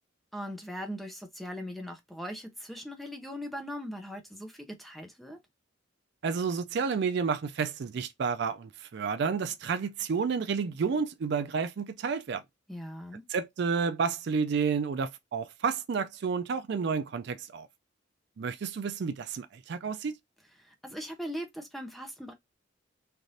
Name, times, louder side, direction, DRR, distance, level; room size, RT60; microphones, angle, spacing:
voice 1, 0.3-5.4 12.7-13.3 20.6-22.3, equal, ahead, 0.6 m, -40 dB
voice 2, 6.2-12.4 13.3-17.7 18.4-20.2, right 5 dB, 55° right, 0.4 m, -30 dB
3.3 x 2.5 x 2.7 m
head